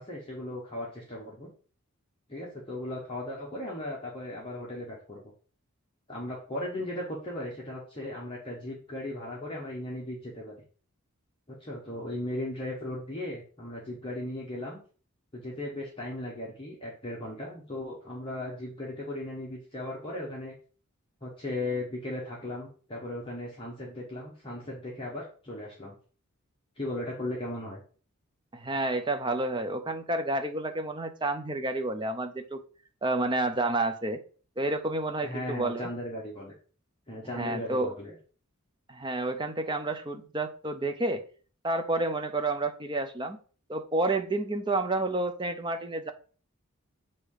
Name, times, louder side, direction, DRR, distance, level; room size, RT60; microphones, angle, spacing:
voice 1, 0.0-1.5 2.3-5.2 6.1-10.5 11.5-14.8 15.3-20.5 21.2-25.9 26.8-27.8 35.2-36.5 37.1-38.2, left 1 dB, 25° left, -4 dB, 1.3 m, -37 dB
voice 2, 28.5-32.6 33.0-34.2 34.6-35.9 37.4-37.9 38.9-41.2 41.6-43.4 43.7-46.1, right 2 dB, 20° right, 7 dB, 0.6 m, -30 dB
8.1 x 2.9 x 4.9 m, 0.40 s
head